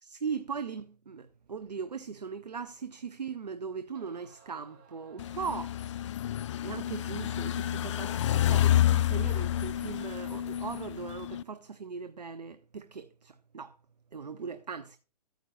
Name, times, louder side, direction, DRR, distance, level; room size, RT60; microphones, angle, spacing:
voice 1, 0.0-5.8 6.4-13.8 14.1-15.0, right 6 dB, 90° right, 0.8 m, -39 dB
sound 1, 2.8-2.9 3.6-3.7 3.9-6.4, right 6 dB, 35° right, 2.1 m, -60 dB
sound 2, 5.2-11.4, left 12 dB, 50° left, 0.4 m, -29 dB
11.5 x 9.2 x 2.6 m
hypercardioid pair, 130°, 21 cm